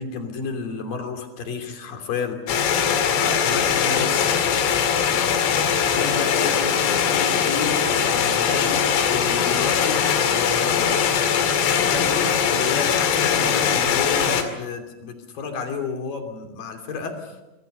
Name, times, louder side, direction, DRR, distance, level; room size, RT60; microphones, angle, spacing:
voice 1, 0.0-2.4 3.2-4.4 5.3-7.8 8.1-8.8 9.1-10.9 11.7-17.4, left 5 dB, 50° left, 5 dB, 4.1 m, -31 dB
sound 1, 2.5-14.4, left 7 dB, 75° left, 4.6 m, -21 dB
27.5 x 22.0 x 6.8 m, 0.99 s
omnidirectional pair, 5.7 m